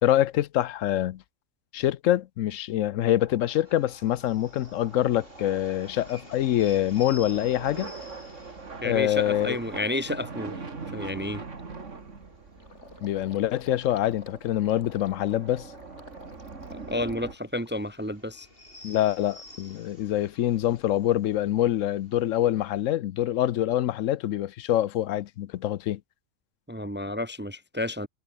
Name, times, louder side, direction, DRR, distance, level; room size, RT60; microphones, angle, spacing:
voice 1, 0.0-1.2 1.7-7.9 8.8-9.6 13.0-15.7 18.8-26.0, left 12 dB, 80° left, 1.0 m, -25 dB
sound 1, 3.1-17.3, right 4 dB, 70° right, 2.7 m, -43 dB
sound 2, 3.6-22.9, left 1 dB, 45° left, 8.0 m, -52 dB
Gurgling, 8.4-8.5 9.0-9.3 9.7-9.8 10.1-18.1 18.5-19.1, left 2 dB, 60° left, 4.6 m, -52 dB
voice 2, 8.8-10.6 10.9-11.4 16.9-18.5 26.7-28.1, left 1 dB, 10° right, 0.6 m, -31 dB
omnidirectional pair, 1.3 m